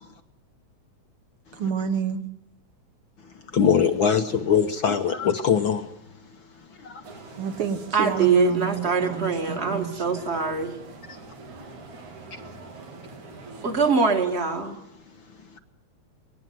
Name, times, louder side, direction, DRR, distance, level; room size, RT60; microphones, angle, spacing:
voice 1, 1.5-2.2 7.4-10.2, right 7 dB, 55° right, 1.8 m, -29 dB
voice 2, 3.5-5.9 6.8-7.0, left 7 dB, 60° left, 1.4 m, -22 dB
sound 1, 7.0-13.9, right 3 dB, 85° right, 4.4 m, -43 dB
voice 3, 7.9-10.8 13.6-14.8, right 4 dB, 25° right, 1.7 m, -23 dB
23.0 x 18.0 x 9.3 m
omnidirectional pair, 3.3 m